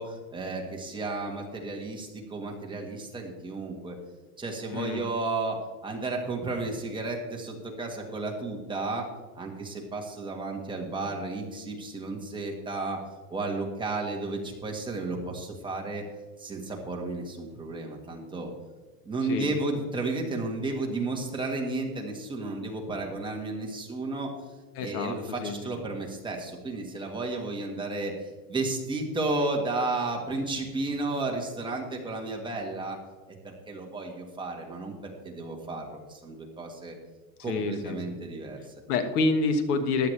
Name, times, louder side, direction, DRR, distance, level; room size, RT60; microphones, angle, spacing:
voice 1, 0.0-4.0 4.4-9.1 9.3-13.0 13.3-16.0 16.4-18.5 19.1-24.3 24.8-33.0 33.3-37.0 37.4-38.7, right 2 dB, 10° right, 0 dB, 1.6 m, -33 dB
voice 2, 4.7-5.0 19.3-19.5 24.7-25.2 25.4-25.5 37.5-38.0 38.9-40.1, left 3 dB, 75° left, 8 dB, 1.6 m, -27 dB
15.0 x 10.5 x 3.3 m, 1.3 s
supercardioid pair, 150°, 46 cm